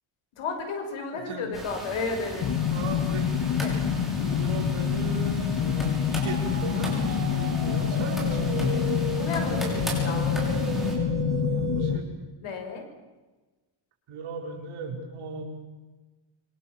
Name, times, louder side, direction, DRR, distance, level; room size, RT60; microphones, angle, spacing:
voice 1, 0.4-2.5 3.6-3.7 9.1-10.4 12.4-12.9, left 4 dB, 85° left, 4 dB, 6.2 m, -33 dB
voice 2, 1.1-1.5 2.7-3.8 4.1-8.8 11.4-12.1 14.1-15.4, right 4 dB, 80° right, 0 dB, 5.1 m, -37 dB
sound 1, 1.5-11.0, right 1 dB, ahead, 6.3 m, -38 dB
sound 2, 2.4-12.0, left 8 dB, 65° left, 2.4 m, -27 dB
sound 3, 5.3-12.0, right 4 dB, 25° right, 4.6 m, -35 dB
26.0 x 24.0 x 7.4 m, 1.2 s
cardioid pair, 170°, 48 cm